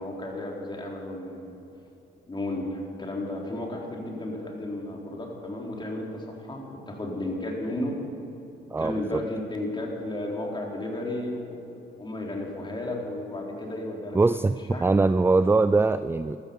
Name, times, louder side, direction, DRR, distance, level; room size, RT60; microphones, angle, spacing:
voice 1, 0.0-1.6 2.3-8.0 8.8-11.6 12.0-14.2 14.7-14.9, left 1 dB, 25° left, -1 dB, 4.1 m, -33 dB
voice 2, 8.7-9.2 14.1-16.4, right 3 dB, 10° right, 13 dB, 0.4 m, -22 dB
15.0 x 13.0 x 7.1 m, 2.9 s
cardioid pair, 90°, 20 cm